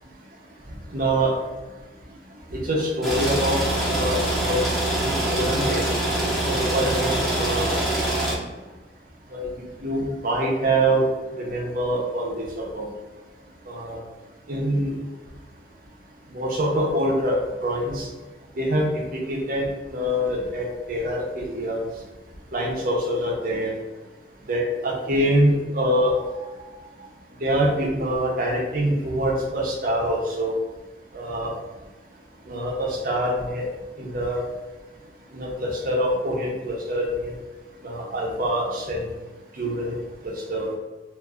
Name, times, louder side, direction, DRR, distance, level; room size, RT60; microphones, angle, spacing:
voice 1, 0.9-1.3 2.5-3.6 3.8-4.2 4.4-4.6 5.0-5.8 6.4-7.7 9.3-11.0 11.4-12.5 12.7-12.9 13.7-14.0 14.5-14.9 16.3-17.4 17.6-18.1 18.6-21.9 22.5-23.7 24.5-26.1 27.4-30.5 31.1-31.5 32.5-33.6 34.0-34.4 35.3-37.3 37.8-39.1 39.6-40.0 40.2-40.7, right 1 dB, 50° right, -1 dB, 0.7 m, -25 dB
sound 1, 3.0-8.3, right 1 dB, ahead, 0.7 m, -24 dB
2.6 x 2.5 x 3.5 m, 1.3 s
head